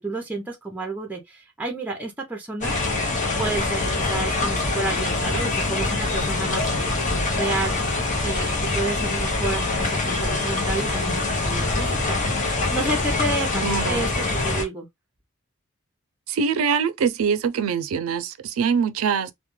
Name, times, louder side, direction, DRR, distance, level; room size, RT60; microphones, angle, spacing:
voice 1, 0.0-2.8 3.4-7.0 7.3-7.8 8.2-14.9, right 2 dB, 10° right, 0.5 m, -30 dB
sound 1, 2.6-14.6, left 2 dB, 35° left, 0.7 m, -24 dB
voice 2, 13.6-14.1 16.3-19.3, right 6 dB, 85° right, 0.4 m, -23 dB
2.2 x 2.1 x 3.0 m
head